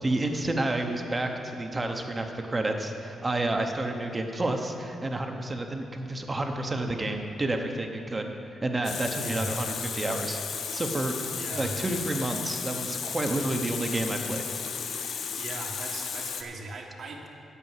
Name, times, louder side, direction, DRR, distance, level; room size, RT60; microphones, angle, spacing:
voice 1, 0.0-9.7 9.9-10.4 10.7-11.1 11.5-14.5 14.9-15.1, right 2 dB, 20° right, 4 dB, 0.8 m, -30 dB
Water tap faucet, 8.8-16.4, left 6 dB, 70° left, 0.7 m, -34 dB
voice 2, 11.3-11.8 15.4-17.3, right 2 dB, 55° right, 1 dB, 1.4 m, -38 dB
8.5 x 8.3 x 7.4 m, 2.8 s
cardioid pair, 120°, 0 cm